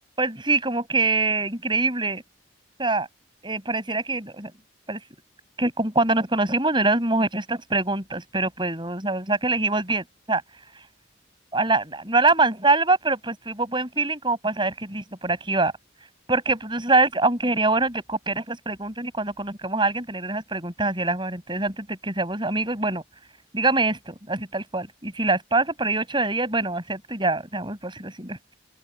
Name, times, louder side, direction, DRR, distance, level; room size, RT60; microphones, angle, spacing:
voice 1, 0.2-2.2 2.8-3.1 3.4-4.5 4.9-5.0 5.6-10.4 11.5-15.7 16.3-23.0 23.5-28.4, right 3 dB, 25° right, 6.3 m, -24 dB
open air
head